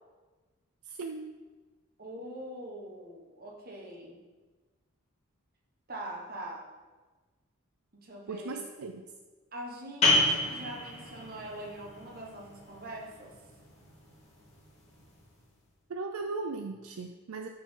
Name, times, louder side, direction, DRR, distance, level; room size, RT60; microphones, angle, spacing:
voice 1, 0.9-1.3 8.3-9.1 15.9-17.5, right 3 dB, 75° right, 5 dB, 0.5 m, -37 dB
voice 2, 2.0-4.2 5.9-6.7 7.9-8.7 9.5-13.4, right 1 dB, 40° right, 0 dB, 1.3 m, -43 dB
sound 1, 10.0-15.4, left 2 dB, 30° left, 2.3 m, -31 dB
12.5 x 4.8 x 3.8 m, 1.3 s
head